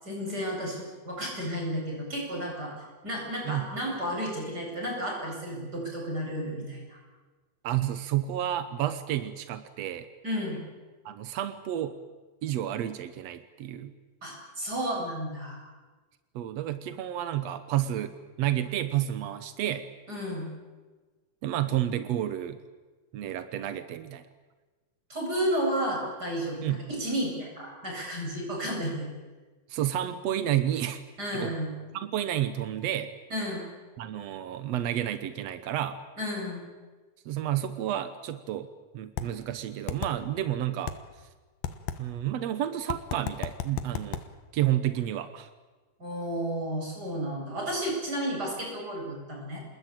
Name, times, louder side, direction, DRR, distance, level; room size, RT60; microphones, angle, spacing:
voice 1, 0.0-2.7 3.0-7.0 10.2-10.6 14.2-15.6 20.1-20.5 25.1-29.1 31.2-31.7 33.3-33.6 36.2-36.7 46.0-49.6, equal, 25° right, -1 dB, 8.6 m, -32 dB
voice 2, 3.4-3.8 7.6-10.1 11.0-11.9 12.4-13.9 16.3-19.8 21.4-22.6 23.1-24.3 26.6-26.8 29.7-31.0 31.3-31.6 31.9-33.1 34.0-36.0 37.2-38.7 38.9-40.9 42.0-44.2 44.5-45.5, right 12 dB, 75° right, 11 dB, 1.5 m, -30 dB
sound 1, 39.2-39.3 39.9-40.1 40.9-41.0 41.6-42.0 42.9-44.2, left 10 dB, 75° left, 2.9 m, -31 dB
28.0 x 20.5 x 9.0 m, 1.3 s
omnidirectional pair, 4.4 m